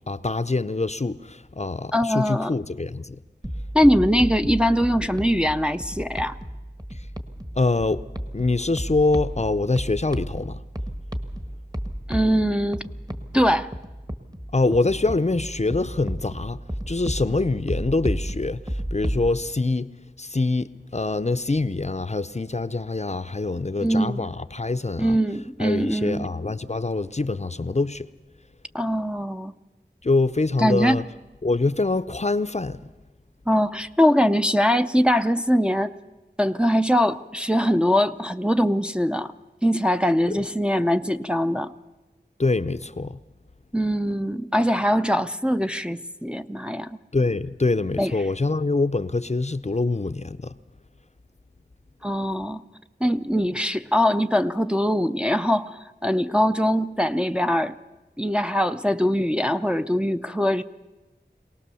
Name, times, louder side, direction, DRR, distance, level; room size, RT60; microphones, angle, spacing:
voice 1, 0.1-3.2 6.9-7.1 7.6-8.0 8.3-10.6 14.5-19.9 20.2-25.2 25.6-28.1 30.0-31.0 31.4-32.8 40.3-40.4 42.4-43.2 47.1-50.5, left 3 dB, 40° left, 0.6 m, -25 dB
voice 2, 1.9-2.5 3.7-6.4 12.1-12.8 13.3-13.7 23.8-24.3 25.0-26.3 28.7-29.5 30.6-31.0 33.5-35.9 36.4-39.3 39.6-41.7 43.7-47.0 48.0-48.1 52.0-52.6 53.0-57.7 58.2-60.6, equal, 5° right, 0.6 m, -22 dB
sound 1, 3.4-19.3, equal, 20° right, 1.5 m, -33 dB
23.5 x 18.0 x 7.0 m
wide cardioid pair, 40°, 18 cm